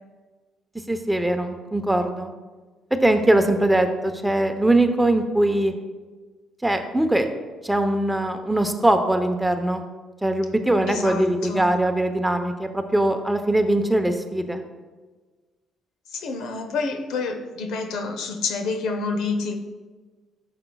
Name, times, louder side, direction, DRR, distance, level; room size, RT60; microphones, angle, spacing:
voice 1, 0.9-2.3 3.0-5.7 6.6-7.3 7.6-9.8 10.2-14.6, right 1 dB, 10° right, 7 dB, 0.8 m, -21 dB
voice 2, 10.9-11.7 16.1-19.6, left 4 dB, 75° left, 6 dB, 0.8 m, -28 dB
10.5 x 6.8 x 2.3 m, 1.3 s
supercardioid pair, 60°, 0 cm